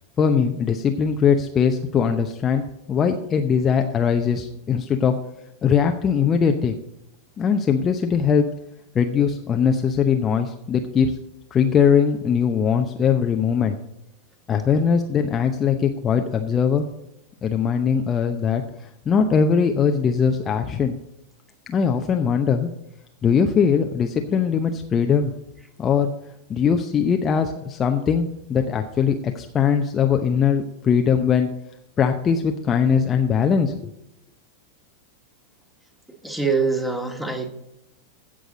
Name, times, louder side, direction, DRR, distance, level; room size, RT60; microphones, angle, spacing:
voice 1, 0.2-2.6 2.9-5.1 5.6-6.7 7.4-8.5 8.9-11.1 11.5-13.7 14.5-16.9 17.4-18.6 19.1-20.9 21.7-22.7 23.2-25.3 25.8-26.1 26.5-31.5 32.0-33.9, left 7 dB, 25° left, 4 dB, 0.8 m, -20 dB
voice 2, 36.2-37.5, right 4 dB, 5° right, 4 dB, 1.9 m, -24 dB
16.0 x 6.4 x 4.0 m, 0.82 s
figure-of-eight pair, 90°, 0 cm